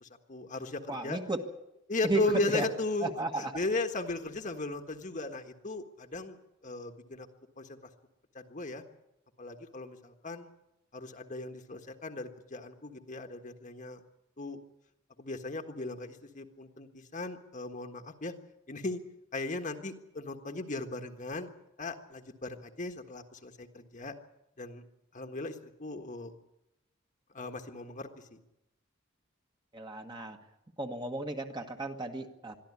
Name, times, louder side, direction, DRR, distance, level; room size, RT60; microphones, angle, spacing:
voice 1, 0.0-1.2 1.9-6.4 6.6-7.3 7.6-7.8 8.3-8.8 9.4-10.5 10.9-14.0 14.4-14.6 15.2-18.3 18.7-19.0 19.3-21.5 21.8-24.1 24.6-24.8 25.1-26.3 27.3-28.4, left 2 dB, 40° left, 5 dB, 1.5 m, -37 dB
voice 2, 0.9-1.4 2.0-2.2 2.5-2.7 3.0-3.5 29.7-30.4 30.8-32.5, right 2 dB, 20° right, 4 dB, 1.6 m, -34 dB
22.5 x 13.5 x 9.8 m, 0.87 s
head